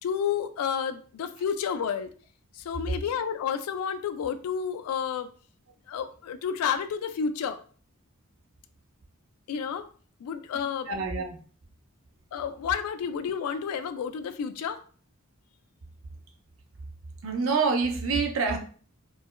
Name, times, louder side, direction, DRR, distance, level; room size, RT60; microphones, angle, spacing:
voice 1, 0.0-2.1 2.5-5.3 5.9-7.6 9.5-9.9 10.2-10.9 12.3-14.8, left 7 dB, 90° left, 11 dB, 0.3 m, -30 dB
voice 2, 10.9-11.4 17.2-18.6, right 4 dB, 65° right, 3 dB, 0.6 m, -26 dB
4.6 x 2.1 x 2.2 m, 0.43 s
head